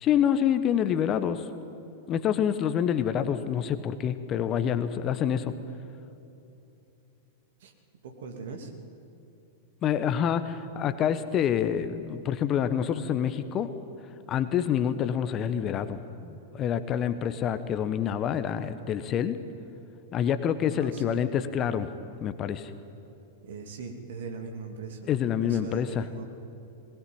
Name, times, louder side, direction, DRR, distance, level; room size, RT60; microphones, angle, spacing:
voice 1, 0.0-1.5 2.1-5.5 9.8-13.7 14.3-19.4 20.1-21.9 22.2-22.7 25.1-26.0, left 9 dB, 30° left, 11 dB, 1.2 m, -27 dB
voice 2, 3.1-3.5 7.6-7.7 8.0-8.7 20.8-21.2 23.4-25.1 25.4-26.2, right 5 dB, 60° right, 4 dB, 2.8 m, -40 dB
20.5 x 20.0 x 8.8 m, 2.9 s
figure-of-eight pair, 95°, 0 cm